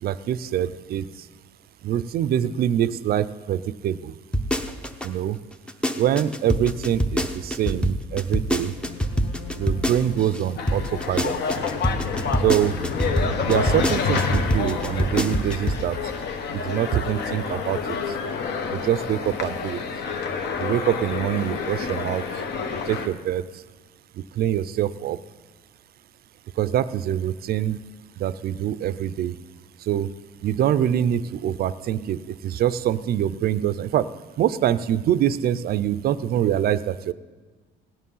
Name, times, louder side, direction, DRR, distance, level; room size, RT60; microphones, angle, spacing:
voice 1, 0.0-1.1 1.8-4.1 5.0-5.4 6.0-8.7 9.6-11.3 12.4-12.8 13.5-16.0 16.5-18.0 18.7-19.8 20.6-22.2 22.9-23.4 24.4-25.2 26.6-27.8 28.2-29.4 29.9-30.1 30.4-34.1 34.4-37.1, right 11 dB, 50° right, 15 dB, 0.5 m, -24 dB
sound 1, 4.3-5.1 5.5-10.4 10.7-15.9 16.2-16.3, equal, 5° left, 0.7 m, -25 dB
sound 2, 8.7-15.4, left 10 dB, 75° left, 1.1 m, -43 dB
sound 3, 10.6-23.1, left 5 dB, 55° left, 1.3 m, -28 dB
17.5 x 10.0 x 5.5 m, 1.3 s
cardioid pair, 155°, 20 cm